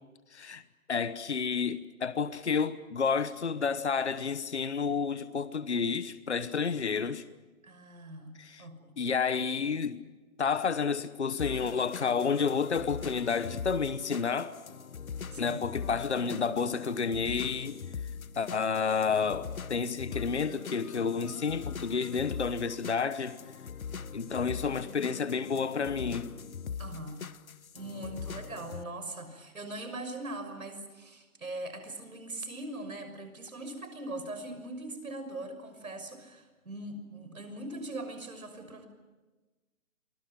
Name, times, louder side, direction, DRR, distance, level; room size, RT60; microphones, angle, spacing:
voice 1, 0.3-0.6 0.9-7.2 8.4-8.6 9.0-10.0 10.4-14.5 15.4-17.8 18.4-23.4 24.1-26.3, left 5 dB, 50° left, 1.1 m, -30 dB
voice 2, 7.6-8.3 8.6-8.9 15.3-15.6 26.8-27.2 27.7-38.9, right 2 dB, 70° right, 6.2 m, -41 dB
sound 1, 11.4-28.8, left 6 dB, 75° left, 1.0 m, -41 dB
30.0 x 24.0 x 6.1 m
hypercardioid pair, 180°, 43 cm